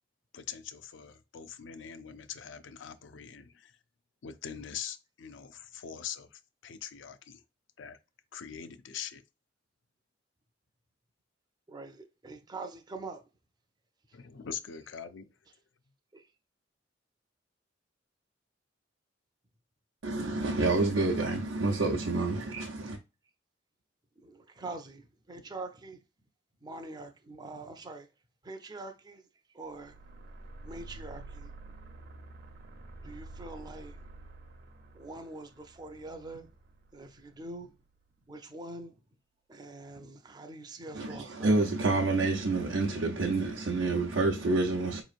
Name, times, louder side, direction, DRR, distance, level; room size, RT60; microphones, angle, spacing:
voice 1, 0.3-3.7 4.2-7.4 7.8-8.0 8.3-9.2 14.1-15.3, left 8 dB, 75° left, 0.5 m, -43 dB
voice 2, 11.7-13.2 16.1-16.3 24.2-26.0 26.6-28.1 28.4-29.2 29.5-29.9 30.6-31.5 33.0-34.0 34.9-36.5 36.9-37.7 38.3-39.0 39.5-41.7, right 2 dB, 20° right, 0.5 m, -44 dB
voice 3, 20.0-23.0 40.9-45.0, right 2 dB, 85° right, 0.7 m, -28 dB
sound 1, 29.7-38.0, right 2 dB, 55° right, 0.8 m, -49 dB
5.1 x 3.0 x 2.4 m
head